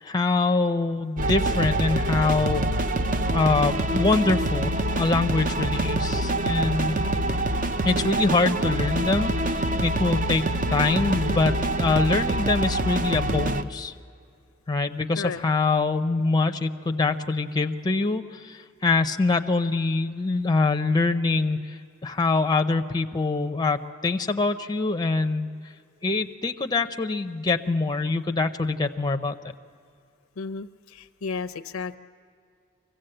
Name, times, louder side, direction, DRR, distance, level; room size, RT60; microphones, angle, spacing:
voice 1, 0.0-2.6 3.3-7.0 7.8-10.4 10.7-13.9 14.7-25.5 26.0-29.3, left 3 dB, 20° left, 7 dB, 0.6 m, -24 dB
sound 1, 1.2-13.6, right 1 dB, 40° right, 0.7 m, -26 dB
Wind, 2.5-12.5, right 2 dB, 85° right, 5.1 m, -39 dB
voice 2, 30.4-32.0, left 5 dB, 75° left, 10 dB, 0.6 m, -33 dB
24.5 x 16.0 x 7.8 m, 2.4 s
head